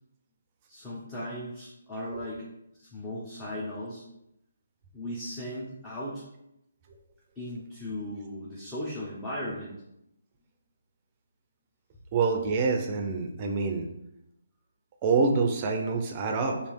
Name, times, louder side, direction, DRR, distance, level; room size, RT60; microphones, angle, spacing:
voice 1, 0.7-2.5 2.9-4.0 4.9-6.2 7.4-9.8, left 1 dB, 10° left, -7 dB, 0.9 m, -37 dB
voice 2, 12.1-13.9 15.0-16.6, right 4 dB, 30° right, 3 dB, 0.6 m, -26 dB
3.2 x 2.8 x 4.5 m, 0.82 s
figure-of-eight pair, 150°, 0 cm